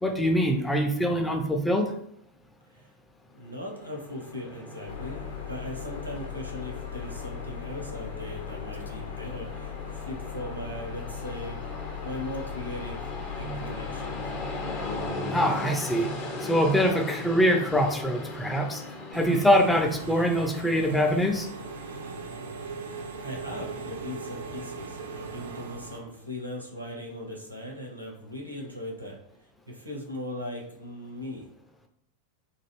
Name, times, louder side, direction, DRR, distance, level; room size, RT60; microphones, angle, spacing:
voice 1, 0.0-1.9 15.3-16.1 16.4-18.8 19.1-21.5, equal, 5° left, 3 dB, 0.5 m, -24 dB
voice 2, 3.3-11.8 12.0-13.0 13.3-14.3 23.2-29.2 29.7-31.5, left 1 dB, 90° right, -1 dB, 0.8 m, -39 dB
Train, 3.5-22.1, left 2 dB, 40° left, 0.7 m, -39 dB
sound 1, 4.9-15.1, left 9 dB, 75° left, 0.4 m, -39 dB
Engine / Mechanisms, 19.1-26.0, right 4 dB, 65° right, 0.4 m, -39 dB
3.2 x 2.4 x 3.0 m, 0.72 s
figure-of-eight pair, 90°, 0 cm